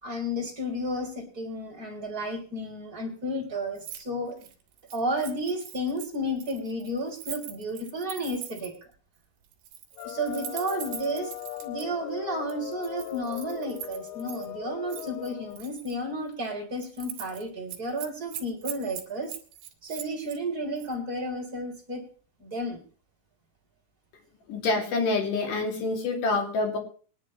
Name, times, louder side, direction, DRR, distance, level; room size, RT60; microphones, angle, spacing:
voice 1, 0.0-4.3 4.9-8.7 10.0-11.3 11.6-19.3 19.8-22.0 22.4-22.8, equal, 20° right, 1 dB, 3.0 m, -32 dB
Keys jangling, 3.8-4.0 4.3-8.8 9.5-11.8 12.5-14.5 14.9-15.9 16.3-16.5 16.8-17.4 17.7-20.4 20.8-20.9, right 10 dB, 60° right, 3.1 m, -42 dB
sound 1, 10.0-15.6, left 16 dB, 80° left, 2.7 m, -39 dB
voice 2, 24.5-26.8, left 3 dB, 50° left, 2 dB, 3.5 m, -27 dB
22.5 x 11.0 x 3.1 m, 0.40 s
omnidirectional pair, 5.8 m